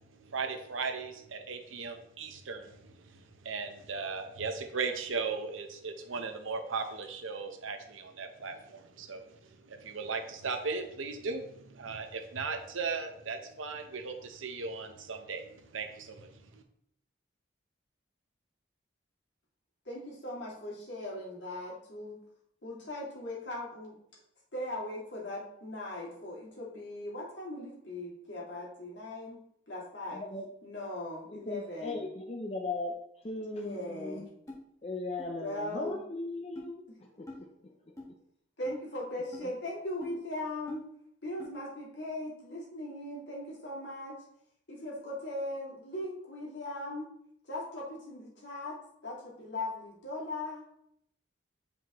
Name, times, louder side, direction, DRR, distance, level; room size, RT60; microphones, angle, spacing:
voice 1, 0.1-16.6, right 4 dB, 90° right, 5 dB, 0.9 m, -37 dB
voice 2, 19.8-22.2 22.6-24.0 24.5-29.4 29.7-30.2 30.6-32.1 33.5-34.3 35.4-36.0 36.9-37.0 38.6-40.8 41.2-44.2 44.7-47.1 47.5-50.7, left 1 dB, 65° left, -5 dB, 2.4 m, -39 dB
voice 3, 30.1-30.5 31.3-34.3 34.8-37.3, left 2 dB, 30° left, 0 dB, 0.6 m, -38 dB
sound 1, 34.5-34.6 35.2-35.3 35.9-36.0 36.5-36.7 37.3-37.4 38.0-38.1 38.6-38.8 39.3-39.5 40.0-40.2 40.7-40.8 41.4-41.5, left 2 dB, 15° left, 1.4 m, -45 dB
7.7 x 4.9 x 3.0 m, 0.73 s
head